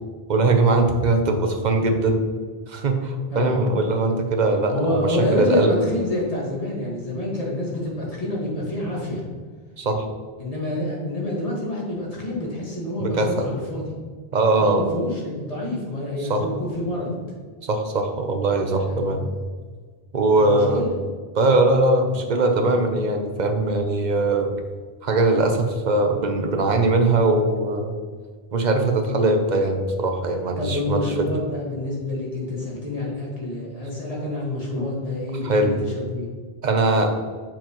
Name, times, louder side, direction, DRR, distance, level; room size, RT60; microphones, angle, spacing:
voice 1, 0.3-2.2 2.7-5.7 9.8-10.0 13.0-13.5 14.3-14.8 16.2-16.4 17.6-19.3 20.1-20.9 21.3-24.5 25.0-27.9 28.5-31.3 35.4-35.8 36.6-37.1, right 2 dB, 50° right, 5 dB, 0.8 m, -21 dB
voice 2, 4.7-9.2 10.4-13.9 14.5-17.1 18.7-19.4 20.4-20.9 30.6-36.3, left 1 dB, 35° left, -4 dB, 1.8 m, -27 dB
6.8 x 5.8 x 3.0 m, 1.6 s
omnidirectional pair, 1.1 m